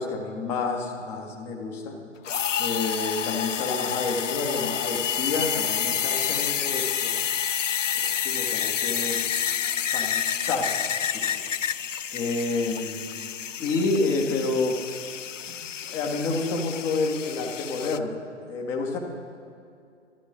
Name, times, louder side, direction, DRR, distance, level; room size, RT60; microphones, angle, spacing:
voice 1, 0.0-2.0 2.6-7.2 7.9-9.2 9.9-11.4 12.1-13.0 13.6-14.8 15.5-18.1 18.5-19.0, left 3 dB, 5° left, 1 dB, 0.4 m, -29 dB
sound 1, 2.2-18.0, left 8 dB, 85° left, 0.5 m, -29 dB
12.5 x 10.5 x 6.0 m, 2.4 s
figure-of-eight pair, 120°, 37 cm